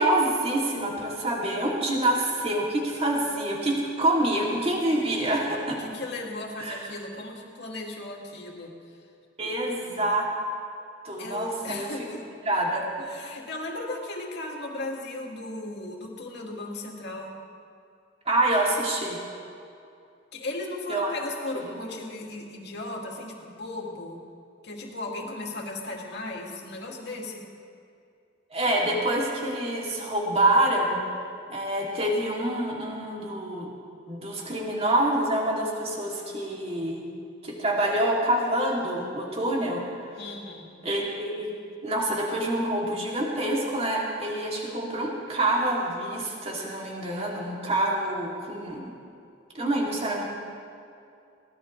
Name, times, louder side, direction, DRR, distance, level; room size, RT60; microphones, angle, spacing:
voice 1, 0.0-5.8 6.6-6.8 9.4-10.3 11.0-11.9 12.4-12.9 13.2-13.3 18.3-19.2 20.9-21.1 28.5-31.0 31.5-33.7 34.1-37.1 37.4-40.1 40.8-41.5 41.8-48.8 49.5-50.2, right 1 dB, 35° right, -3 dB, 2.9 m, -26 dB
voice 2, 5.7-8.7 11.2-12.2 13.0-17.4 20.3-24.2 24.6-27.5 40.2-40.7, left 2 dB, 65° left, -1 dB, 2.6 m, -36 dB
22.5 x 18.0 x 3.3 m, 2.5 s
head